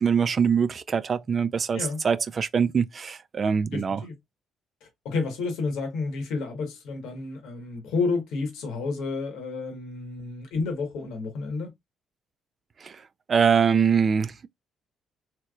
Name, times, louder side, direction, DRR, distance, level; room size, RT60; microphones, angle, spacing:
voice 1, 0.0-4.0 12.8-13.0 13.3-14.5, right 6 dB, 40° right, 0.3 m, -23 dB
voice 2, 3.7-4.1 4.8-11.7, left 4 dB, 85° left, 1.3 m, -30 dB
3.3 x 3.0 x 2.4 m
cardioid pair, 90°, 0 cm